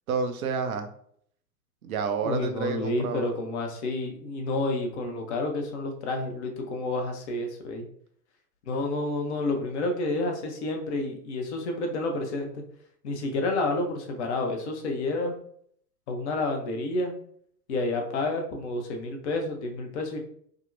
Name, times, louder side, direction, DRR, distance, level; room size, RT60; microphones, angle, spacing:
voice 1, 0.1-0.9 1.8-3.3, right 5 dB, 65° right, 7 dB, 0.6 m, -29 dB
voice 2, 2.2-7.9 8.7-12.6 13.0-15.4 16.1-17.1 17.7-20.2, left 2 dB, 45° left, 3 dB, 0.7 m, -29 dB
3.5 x 2.1 x 2.5 m, 0.64 s
figure-of-eight pair, 100°, 48 cm